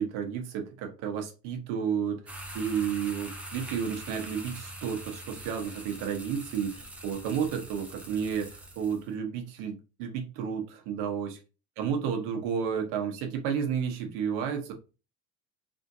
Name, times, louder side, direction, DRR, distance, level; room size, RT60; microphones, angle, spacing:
voice 1, 0.0-2.2 2.5-11.4 11.8-14.7, right 7 dB, 75° right, 1.1 m, -32 dB
sound 1, 2.3-9.1, right 1 dB, 5° right, 0.7 m, -43 dB
3.6 x 2.7 x 2.6 m
supercardioid pair, 120°, 34 cm